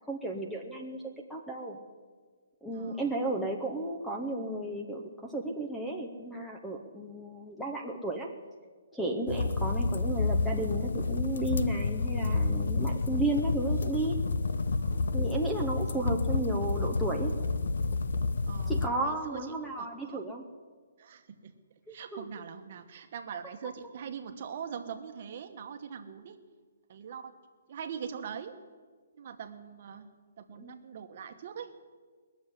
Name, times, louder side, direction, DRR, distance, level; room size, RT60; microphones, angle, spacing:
voice 1, 0.1-1.8 2.6-8.3 8.9-14.2 15.1-17.3 18.7-20.4 21.9-22.3 30.6-30.8, right 2 dB, ahead, 1 dB, 0.7 m, -33 dB
voice 2, 2.7-3.1 14.7-15.6 18.5-20.2 21.0-21.5 21.9-26.4 26.9-27.3 27.7-28.6 29.1-30.1 30.4-31.7, right 7 dB, 35° right, 6 dB, 1.1 m, -43 dB
sound 1, 9.3-18.9, left 3 dB, 80° left, 0.9 m, -29 dB
21.0 x 7.1 x 9.8 m, 1.5 s
hypercardioid pair, 175°, 0 cm